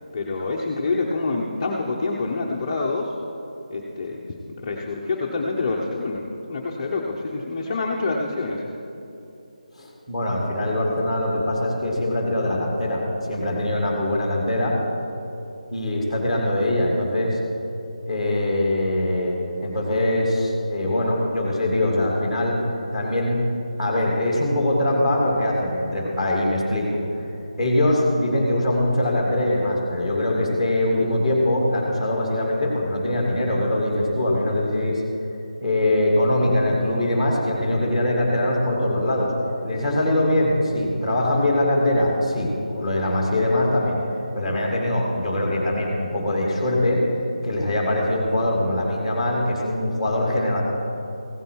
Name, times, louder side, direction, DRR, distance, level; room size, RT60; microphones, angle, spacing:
voice 1, 0.1-3.1 3.7-4.2 4.5-6.2 6.5-8.6, left 3 dB, 20° left, -3 dB, 0.7 m, -26 dB
voice 2, 9.8-13.0 13.3-14.8 15.7-17.4 18.1-22.6 22.9-23.4 23.8-27.3 27.6-35.0 35.6-39.3 39.6-44.0 44.3-47.0 47.4-50.6, left 1 dB, 5° right, -3 dB, 1.9 m, -22 dB
16.0 x 9.0 x 4.6 m, 2.9 s
figure-of-eight pair, 175°, 4 cm